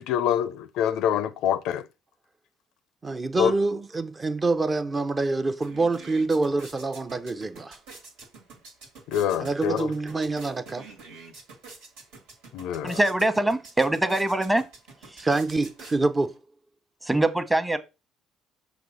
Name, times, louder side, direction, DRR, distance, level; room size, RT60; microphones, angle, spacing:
voice 1, 0.0-1.8 3.4-3.5 9.1-9.9 12.5-13.0, left 9 dB, 75° left, 0.4 m, -25 dB
voice 2, 3.0-7.8 9.4-10.9 15.2-16.3, right 3 dB, 30° right, 0.6 m, -26 dB
sound 1, 5.1-5.2 5.5-16.4, right 3 dB, 85° right, 1.9 m, -48 dB
voice 3, 12.8-14.6 15.1-15.3 17.0-17.8, right 1 dB, 10° right, 1.0 m, -23 dB
6.0 x 3.0 x 5.3 m
supercardioid pair, 75°, 0 cm